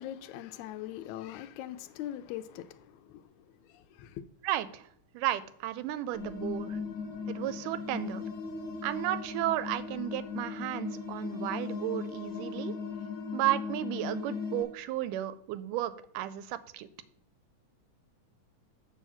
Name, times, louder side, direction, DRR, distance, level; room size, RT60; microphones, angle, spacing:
voice 1, 0.0-3.2 3.7-4.2, left 12 dB, 80° left, 1.8 m, -41 dB
voice 2, 4.4-4.8 5.1-6.8 7.3-8.2 8.8-12.7 13.3-16.9, right 13 dB, 85° right, 2.1 m, -33 dB
sound 1, 6.1-14.6, left 5 dB, 45° left, 1.7 m, -38 dB
7.3 x 4.8 x 7.0 m
omnidirectional pair, 3.6 m